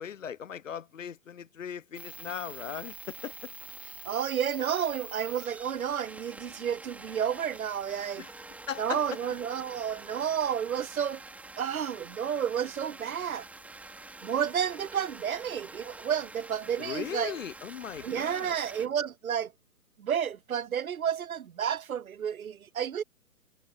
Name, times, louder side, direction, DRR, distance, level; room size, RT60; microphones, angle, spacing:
voice 1, 0.0-3.5 8.2-8.3 8.7-9.0 16.8-18.6, left 8 dB, 55° left, 1.3 m, -38 dB
sound 1, 1.9-18.9, right 2 dB, 5° right, 3.1 m, -46 dB
voice 2, 4.0-8.2 8.8-11.2 11.6-13.4 14.2-17.3 18.0-19.5 20.0-23.0, right 8 dB, 70° right, 0.8 m, -31 dB
figure-of-eight pair, 135°, 45 cm